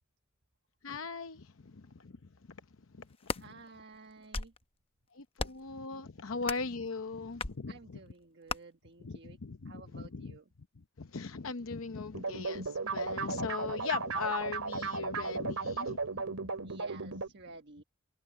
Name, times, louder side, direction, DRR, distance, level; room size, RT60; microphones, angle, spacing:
voice 1, 0.8-2.2 2.5-2.6 2.9-3.3 5.1-8.0 9.0-10.4 11.0-16.7, left 4 dB, 65° left, 0.8 m, -39 dB
sound 1, 3.0-3.5 4.1-4.6 5.4-5.7 6.4-6.7 7.4-7.6 8.5-8.6, left 3 dB, 25° left, 0.8 m, -36 dB
voice 2, 3.4-4.5 7.7-9.4 9.6-10.5 16.6-17.8, right 3 dB, 55° right, 1.3 m, -53 dB
sound 2, 12.1-17.3, right 4 dB, 80° right, 2.2 m, -36 dB
head